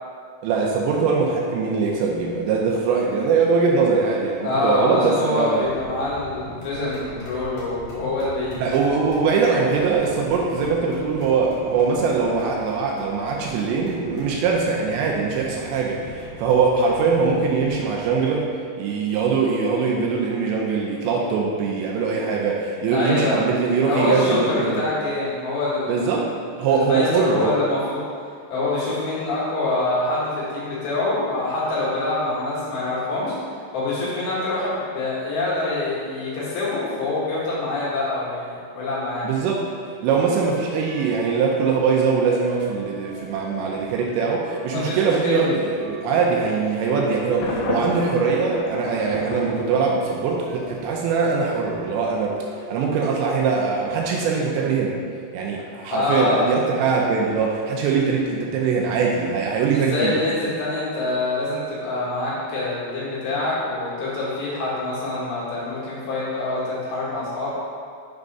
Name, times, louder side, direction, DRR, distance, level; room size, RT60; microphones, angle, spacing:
voice 1, 0.4-5.7 8.6-18.5 18.8-24.8 25.9-26.3 26.6-27.6 39.2-39.7 40.0-52.4 52.7-55.0 55.3-60.1, right 5 dB, 80° right, -1 dB, 2.7 m, -22 dB
voice 2, 4.4-8.7 22.9-23.4 23.9-26.0 26.7-28.0 28.5-33.4 33.7-39.3 44.7-45.4 55.9-56.4 59.7-67.5, left 2 dB, 70° left, -8 dB, 3.8 m, -25 dB
sound 1, 5.6-18.3, right 2 dB, 50° left, 2.5 m, -42 dB
sound 2, 40.4-54.7, left 2 dB, 55° right, 2.5 m, -43 dB
Thunder, 47.4-50.4, left 2 dB, 85° left, 2.1 m, -31 dB
7.7 x 3.6 x 5.3 m, 2.2 s
omnidirectional pair, 5.4 m